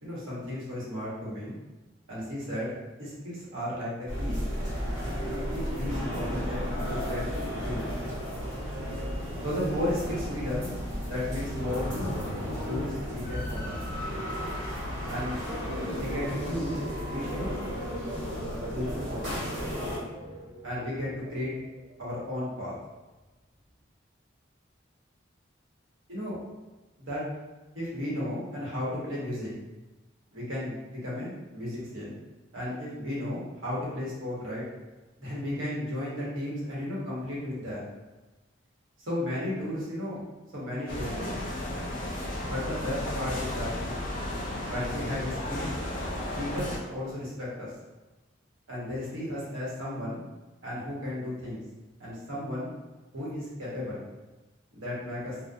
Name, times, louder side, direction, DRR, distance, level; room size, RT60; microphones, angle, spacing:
voice 1, 0.0-1.6 2.1-2.7 3.0-4.4 5.2-7.9 9.4-12.1 12.6-13.8 15.1-15.4 15.9-16.8 17.0-17.5 18.6-19.3 20.6-21.5 22.0-22.7 26.1-26.4 27.0-27.2 27.7-29.5 30.3-32.1 32.5-34.6 35.2-37.9 39.0-40.2 40.5-41.3 42.4-44.1 44.7-45.7 46.4-47.7 48.7-50.2 50.6-51.6 52.0-52.7 53.1-54.0 54.7-55.4, left 1 dB, 85° right, -7 dB, 1.0 m, -34 dB
sound 1, 4.1-20.0, equal, 60° right, 1.2 m, -33 dB
sound 2, 15.2-22.4 22.8-23.2, equal, 10° right, 0.5 m, -45 dB
sound 3, 40.9-46.8, left 1 dB, 40° left, 0.4 m, -34 dB
2.6 x 2.1 x 2.2 m, 1.1 s
head